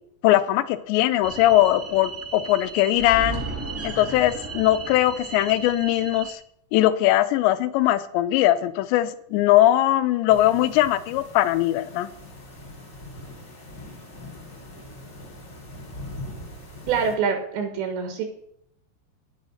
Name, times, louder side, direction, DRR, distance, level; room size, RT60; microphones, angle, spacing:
voice 1, 0.2-3.4 3.8-6.4 6.7-12.1, left 14 dB, 80° left, 13 dB, 2.9 m, -20 dB
sound 1, 1.2-6.3, right 4 dB, 5° right, 1.5 m, -35 dB
sound 2, 10.3-17.2, left 1 dB, 25° left, 3.4 m, -41 dB
voice 2, 16.9-18.2, right 6 dB, 75° right, 5 dB, 3.7 m, -25 dB
10.5 x 9.5 x 6.3 m, 0.70 s
omnidirectional pair, 5.2 m